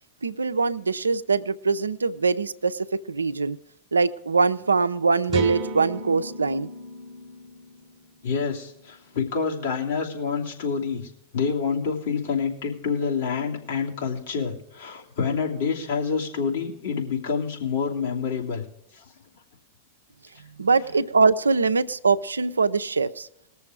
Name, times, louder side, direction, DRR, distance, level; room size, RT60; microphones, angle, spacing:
voice 1, 0.2-3.6 3.9-6.7 20.6-23.3, right 4 dB, 90° right, 12 dB, 0.5 m, -23 dB
sound 1, 5.3-9.1, right 2 dB, 35° right, 0.9 m, -35 dB
voice 2, 8.2-18.6 18.9-19.0, left 5 dB, 70° left, -2 dB, 2.9 m, -27 dB
20.0 x 6.9 x 4.8 m, 0.81 s
hypercardioid pair, 100°, 0 cm